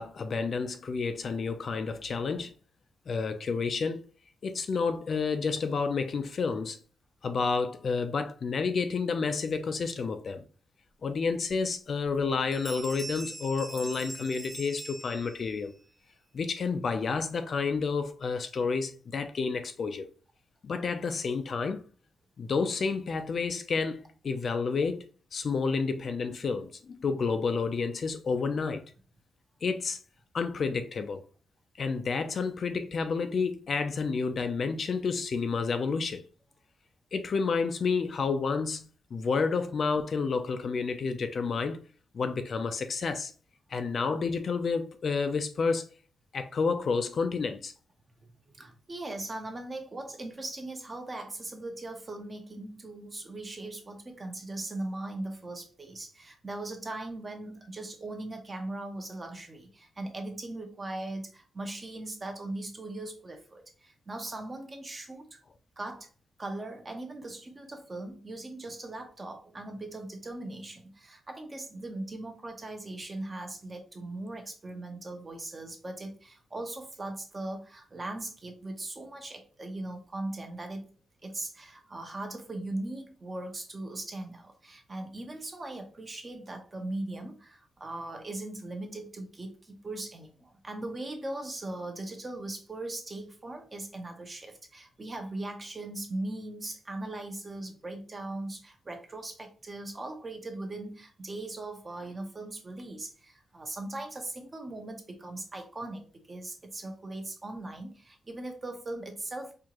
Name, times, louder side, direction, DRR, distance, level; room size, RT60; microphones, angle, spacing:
voice 1, 0.0-2.5 3.1-4.0 4.4-6.8 7.2-10.4 11.0-15.7 16.3-20.1 20.6-21.8 22.4-25.1 25.3-28.9 29.6-30.0 30.3-31.2 31.8-36.2 37.1-41.8 42.1-43.3 43.7-45.9 46.3-47.7, left 4 dB, 50° left, 0.4 m, -30 dB
Bell, 11.4-11.5 12.0-12.3 12.5-15.7, right 1 dB, ahead, 0.6 m, -43 dB
voice 2, 48.5-65.3 65.8-66.1 66.4-80.9 81.2-109.5, right 2 dB, 25° right, 0.8 m, -39 dB
4.4 x 2.5 x 2.9 m
cardioid pair, 120°, 0 cm